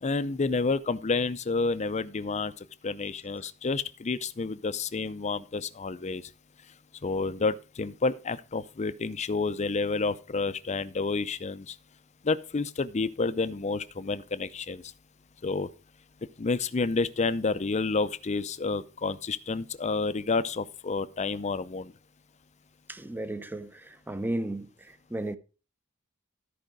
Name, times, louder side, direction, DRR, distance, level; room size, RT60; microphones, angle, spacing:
voice 1, 0.0-6.3 7.0-11.8 12.2-14.9 15.4-15.7 16.4-21.9, left 4 dB, 35° left, 0.5 m, -29 dB
voice 2, 22.9-25.4, right 1 dB, 10° right, 0.6 m, -34 dB
13.0 x 5.0 x 5.0 m
head